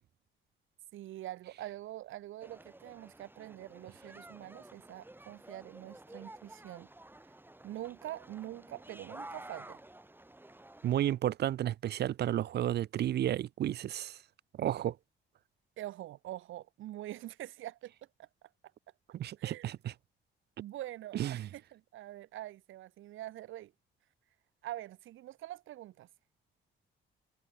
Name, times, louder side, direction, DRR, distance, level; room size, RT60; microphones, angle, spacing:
voice 1, 0.9-6.9 7.6-9.8 15.8-17.9 18.2-18.3 19.4-19.7 20.6-23.7 24.6-26.1, right 14 dB, 85° right, 2.4 m, -45 dB
sound 1, 2.4-11.1, right 1 dB, 10° right, 5.0 m, -52 dB
voice 2, 10.8-14.2 14.6-14.9 19.1-19.9 21.1-21.5, right 12 dB, 55° right, 0.5 m, -32 dB
cardioid pair, 90°, 20 cm